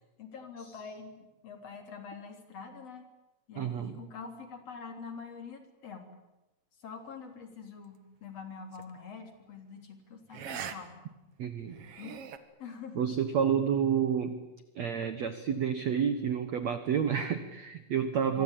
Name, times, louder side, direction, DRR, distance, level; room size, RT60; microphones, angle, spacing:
voice 1, 0.2-3.0 3.5-6.1 6.8-11.0 12.0-12.2 12.6-13.1 18.3-18.4, left 5 dB, 35° left, 6 dB, 3.8 m, -45 dB
voice 2, 3.6-4.0 11.4-11.8 12.9-14.5 14.7-18.4, right 7 dB, 90° right, 10 dB, 1.5 m, -29 dB
sound 1, 8.7-9.0 10.3-10.8 11.1-11.2 11.7-12.4, right 7 dB, 65° right, 1.5 m, -41 dB
26.5 x 23.5 x 9.1 m, 1.0 s
omnidirectional pair, 5.3 m